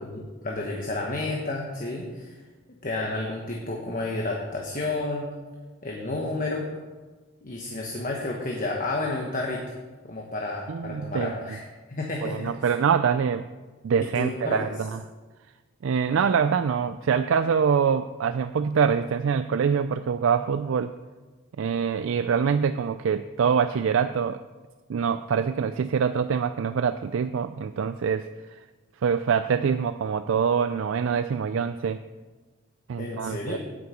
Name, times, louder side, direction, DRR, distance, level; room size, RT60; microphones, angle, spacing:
voice 1, 0.1-2.4 2.8-5.3 5.8-6.7 7.4-9.6 10.0-12.7 14.0-14.6 33.0-33.6, left 2 dB, 40° left, -1 dB, 1.2 m, -31 dB
voice 2, 10.7-11.3 12.2-13.4 13.8-15.0 15.8-20.9 21.6-24.4 24.9-28.6 29.0-32.0 32.9-33.6, right 6 dB, 65° right, 11 dB, 0.3 m, -25 dB
9.3 x 6.7 x 8.4 m, 1.3 s
head